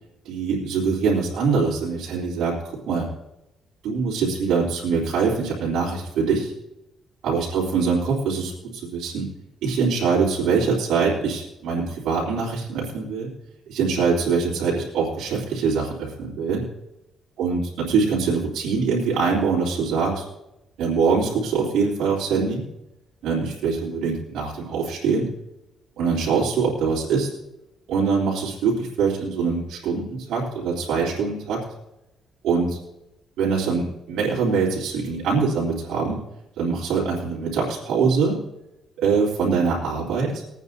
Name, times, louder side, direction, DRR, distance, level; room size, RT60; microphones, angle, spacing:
voice 1, 0.2-3.1 3.8-6.5 7.2-9.3 9.6-13.3 13.7-16.6 17.4-20.2 20.8-22.6 23.2-25.3 26.0-27.3 27.9-31.6 32.4-32.8 33.4-36.2 36.6-38.4 39.0-40.4, right 5 dB, 85° right, -6 dB, 3.3 m, -23 dB
22.0 x 9.1 x 2.7 m, 0.92 s
cardioid pair, 90°, 0 cm